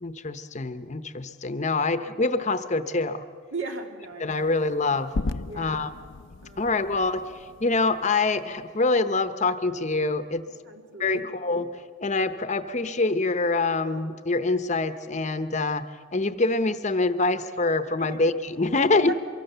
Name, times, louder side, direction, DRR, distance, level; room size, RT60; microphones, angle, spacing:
voice 1, 0.0-3.2 4.2-5.1 5.5-5.9 6.6-7.3 7.6-10.4 11.0-11.7 12.0-19.1, left 3 dB, 35° left, 11 dB, 0.8 m, -25 dB
voice 2, 3.5-4.4 5.5-5.9 6.4-6.8 10.7-11.3 18.0-18.2 19.1-19.2, right 3 dB, 70° right, 4 dB, 2.4 m, -37 dB
sound 1, 4.3-8.6, left 3 dB, 60° left, 0.6 m, -36 dB
24.5 x 23.0 x 6.8 m, 2.1 s
head